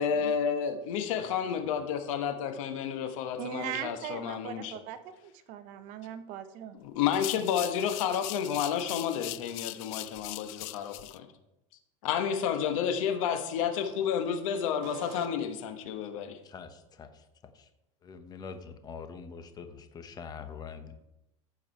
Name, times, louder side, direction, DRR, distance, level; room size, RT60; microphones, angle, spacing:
voice 1, 0.0-4.7 6.8-11.3 12.0-16.4, left 8 dB, 75° left, 7 dB, 1.3 m, -31 dB
voice 2, 3.4-6.8 14.8-15.3, right 10 dB, 50° right, 11 dB, 0.8 m, -40 dB
sound 1, 7.1-11.2, left 20 dB, 55° left, 0.4 m, -40 dB
voice 3, 16.4-17.7 18.0-21.0, left 6 dB, 25° left, 8 dB, 0.9 m, -45 dB
14.5 x 4.9 x 4.6 m, 0.90 s
supercardioid pair, 140°, 17 cm